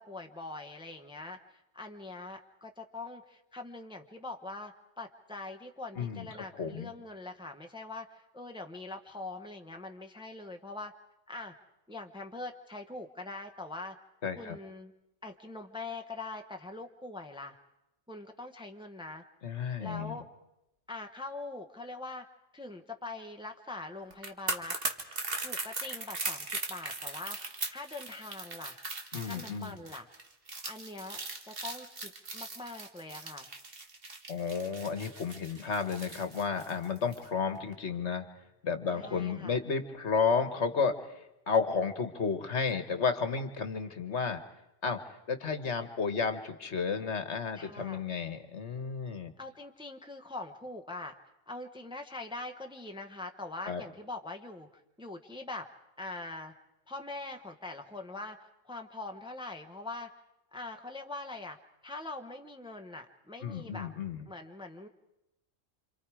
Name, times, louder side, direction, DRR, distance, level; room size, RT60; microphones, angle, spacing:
voice 1, 0.0-10.9 11.3-11.5 11.9-14.0 14.4-14.9 15.2-17.6 18.1-19.2 19.8-20.3 20.9-22.3 22.5-24.8 25.4-28.8 29.2-30.1 30.6-31.2 31.5-33.5 38.9-39.6 47.5-48.0 49.4-51.1 51.5-55.7 56.0-56.5 56.9-60.1 60.5-61.6 61.8-63.9 64.3-64.9, left 2 dB, 5° right, 4 dB, 1.0 m, -43 dB
voice 2, 6.0-6.3 6.6-6.9 14.2-14.6 19.4-20.2 29.1-29.7 34.3-38.2 38.6-44.4 44.8-45.0 45.3-49.3 53.6-53.8 63.4-64.3, left 5 dB, 60° left, 8 dB, 1.6 m, -32 dB
sound 1, 24.1-37.3 37.6-37.7, right 3 dB, 50° right, 1.7 m, -39 dB
27.0 x 26.5 x 4.9 m, 0.88 s
omnidirectional pair, 1.3 m